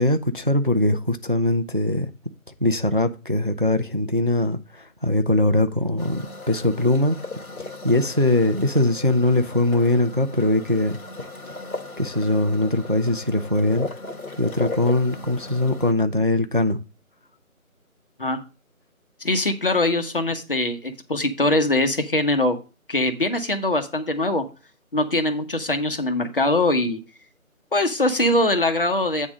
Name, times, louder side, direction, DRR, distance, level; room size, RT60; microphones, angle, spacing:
voice 1, 0.0-2.1 2.6-7.2 7.6-11.0 12.0-13.9 14.4-16.8, left 1 dB, 40° right, 0.5 m, -21 dB
sound 1, 6.0-15.9, left 3 dB, 80° left, 1.7 m, -36 dB
voice 2, 19.2-22.6 22.9-24.4 24.9-27.0 27.7-29.3, left 1 dB, 40° left, 1.1 m, -22 dB
8.7 x 3.7 x 6.2 m
figure-of-eight pair, 170°, 43 cm